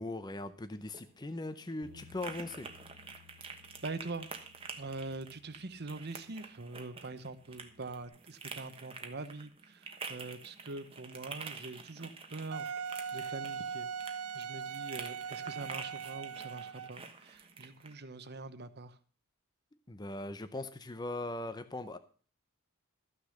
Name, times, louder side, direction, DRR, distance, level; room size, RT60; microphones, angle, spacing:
voice 1, 0.0-2.7 19.9-22.0, left 2 dB, 20° left, 10 dB, 0.6 m, -40 dB
sound 1, 0.8-17.9, right 5 dB, 25° right, 1.2 m, -48 dB
Bass guitar, 1.8-8.1, left 5 dB, 85° right, 2.4 m, -61 dB
voice 2, 3.8-4.3 4.8-12.7 13.1-13.9 14.3-19.0, right 3 dB, 45° right, 12 dB, 1.0 m, -43 dB
Wind instrument woodwind instrument, 12.5-17.0, right 6 dB, 70° right, 0.5 m, -40 dB
14.0 x 6.6 x 6.4 m, 0.40 s
head